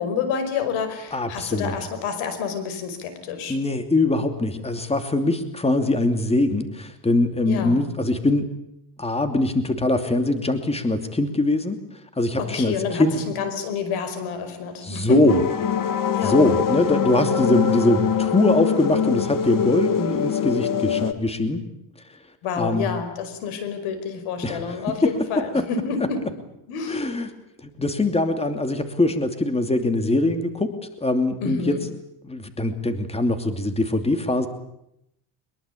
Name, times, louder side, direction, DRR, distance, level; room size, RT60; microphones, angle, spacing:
voice 1, 0.0-3.6 7.5-7.8 12.4-15.4 16.1-16.5 22.4-26.2 26.7-27.1 31.4-31.8, left 5 dB, 85° left, 10 dB, 5.3 m, -28 dB
voice 2, 1.1-1.7 3.5-8.5 9.0-11.8 12.2-13.2 14.8-15.4 16.2-21.6 22.6-22.9 24.4-25.1 25.5-25.6 26.9-27.3 27.6-30.7 31.0-31.8 32.3-34.5, left 2 dB, 15° left, 8 dB, 2.7 m, -22 dB
sound 1, 15.3-21.1, left 8 dB, 45° left, 2.0 m, -23 dB
23.5 x 22.0 x 8.5 m, 0.79 s
cardioid pair, 120°, 47 cm